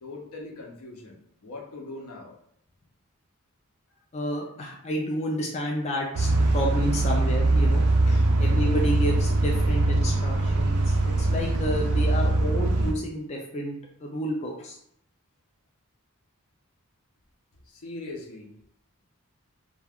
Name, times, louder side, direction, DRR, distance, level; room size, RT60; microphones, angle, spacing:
voice 1, 0.0-2.3 8.1-8.3 17.6-18.5, left 2 dB, 75° left, 0 dB, 0.7 m, -41 dB
voice 2, 4.1-7.8 8.4-14.8, equal, 30° left, -2 dB, 0.4 m, -30 dB
sound 1, 6.1-12.9, right 2 dB, 75° right, 0.4 m, -22 dB
2.3 x 2.3 x 3.4 m, 0.72 s
head